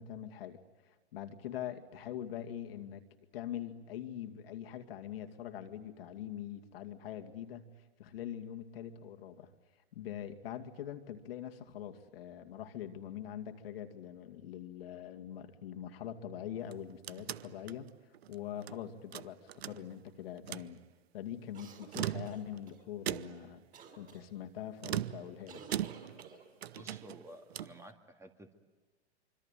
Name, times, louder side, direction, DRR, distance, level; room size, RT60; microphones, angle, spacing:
voice 1, 0.0-3.0 3.3-7.7 8.0-9.5 9.9-17.9 18.3-20.8 21.1-23.6 24.0-25.6, left 10 dB, 60° left, 6 dB, 2.3 m, -43 dB
sound 1, 16.6-18.8 19.1-20.1 20.4-20.7 21.8-22.6 23.1-23.6 24.8-26.3 26.6-27.8, right 12 dB, 65° right, 0.8 m, -40 dB
sound 2, 21.5-22.8 23.7-24.2 25.5-26.8, right 5 dB, 25° right, 5.4 m, -52 dB
voice 2, 26.7-28.5, right 1 dB, 10° right, 6 dB, 2.0 m, -52 dB
25.5 x 25.5 x 9.2 m, 1.3 s
hypercardioid pair, 110°, 34 cm